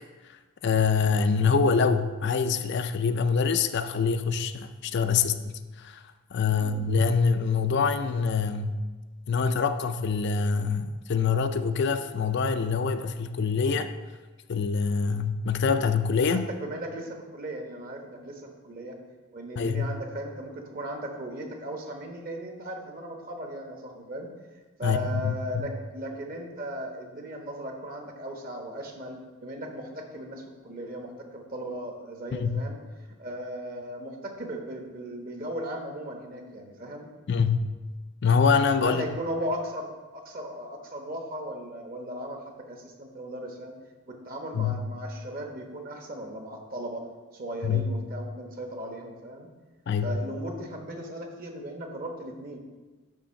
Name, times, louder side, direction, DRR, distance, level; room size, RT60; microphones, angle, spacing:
voice 1, 0.6-6.0 6.3-8.8 9.3-13.9 14.5-16.5 19.6-19.9 24.8-25.0 25.2-25.6 32.3-32.6 37.3-37.7 38.2-39.1 44.5-44.8 47.6-47.9 49.9-50.2, left 5 dB, 50° left, 9 dB, 0.4 m, -25 dB
voice 2, 16.3-19.0 19.3-24.3 24.8-32.8 33.2-37.1 38.8-43.7 44.1-47.1 47.3-49.5 50.0-52.6, equal, 40° right, 2 dB, 1.1 m, -37 dB
10.0 x 3.4 x 6.3 m, 1.3 s
head